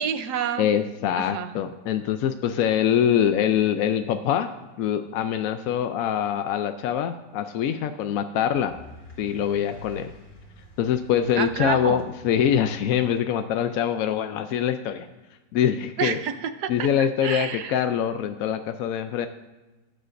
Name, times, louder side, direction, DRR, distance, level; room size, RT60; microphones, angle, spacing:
voice 1, 0.0-0.7 1.1-1.5 11.4-12.0 16.0-17.8, right 8 dB, 70° right, 10 dB, 1.2 m, -29 dB
voice 2, 0.6-4.5 4.8-8.7 9.2-10.1 10.8-15.1 15.5-16.2 16.7-19.3, left 9 dB, 70° left, 8 dB, 0.8 m, -24 dB
sound 1, 8.5-13.1, left 1 dB, 45° left, 2.3 m, -46 dB
18.5 x 8.8 x 2.6 m, 1.1 s
omnidirectional pair, 1.9 m